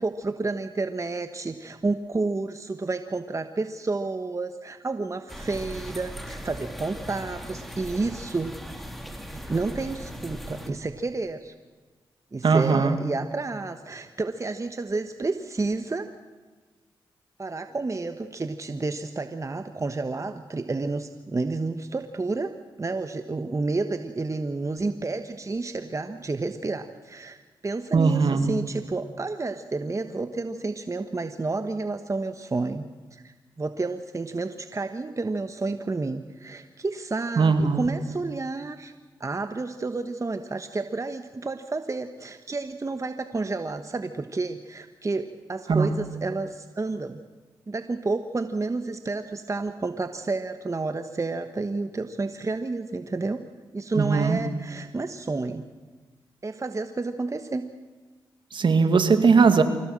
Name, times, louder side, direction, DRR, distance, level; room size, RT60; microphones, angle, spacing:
voice 1, 0.0-8.5 9.3-11.5 12.3-16.1 17.4-22.5 22.8-38.9 39.2-47.2 47.7-53.4 53.7-55.7 56.4-57.6, right 3 dB, 35° right, 9 dB, 1.2 m, -30 dB
sound 1, 5.3-10.7, equal, ahead, 3.5 m, -39 dB
voice 2, 12.4-13.0 27.9-28.5 37.4-37.9 45.7-45.9 54.0-54.4 58.5-59.6, right 5 dB, 60° right, 9 dB, 2.2 m, -19 dB
25.0 x 16.5 x 7.6 m, 1.3 s
cardioid pair, 55°, 9 cm